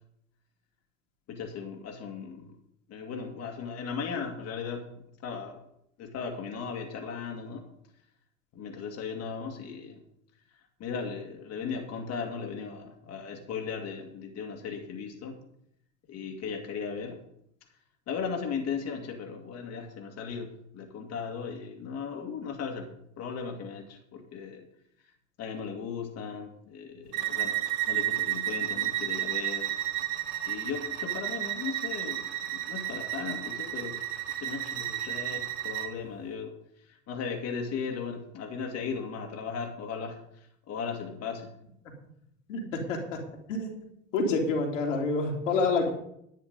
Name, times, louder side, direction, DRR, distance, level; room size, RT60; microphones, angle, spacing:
voice 1, 1.3-2.6 2.9-4.9 5.2-5.6 6.0-7.7 8.5-10.0 10.5-15.4 16.1-17.2 18.1-24.7 25.0-25.1 25.4-27.6 27.9-29.8 30.4-34.0 34.4-41.5, left 6 dB, 40° left, 2 dB, 2.0 m, -37 dB
Bowed string instrument, 27.1-35.9, right 13 dB, 55° right, 1.4 m, -32 dB
voice 2, 42.5-43.2 43.5-43.7 44.1-45.9, left 3 dB, 70° left, 1 dB, 2.8 m, -28 dB
11.0 x 9.4 x 5.3 m, 0.74 s
figure-of-eight pair, 70°, 38 cm